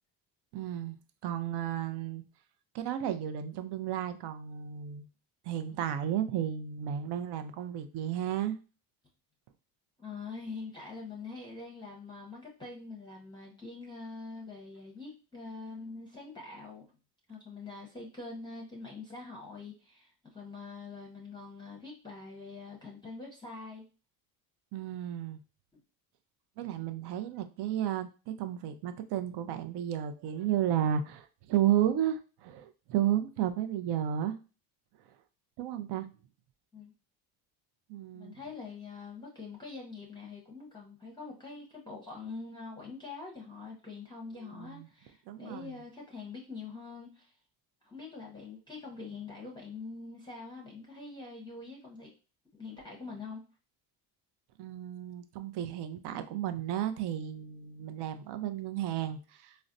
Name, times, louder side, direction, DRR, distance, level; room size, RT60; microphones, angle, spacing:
voice 1, 0.5-1.0 1.2-2.2 2.7-5.1 5.4-8.6 24.7-25.4 26.6-34.4 35.6-36.1 37.9-38.4 44.5-44.9 45.3-45.8 54.6-59.6, right 10 dB, 60° right, 10 dB, 0.5 m, -33 dB
voice 2, 10.0-16.9 17.3-23.9 36.7-36.9 38.1-47.3 47.8-52.1 52.5-53.4, left 4 dB, 10° left, -2 dB, 0.7 m, -44 dB
3.9 x 2.1 x 2.5 m, 0.34 s
supercardioid pair, 95°, 46 cm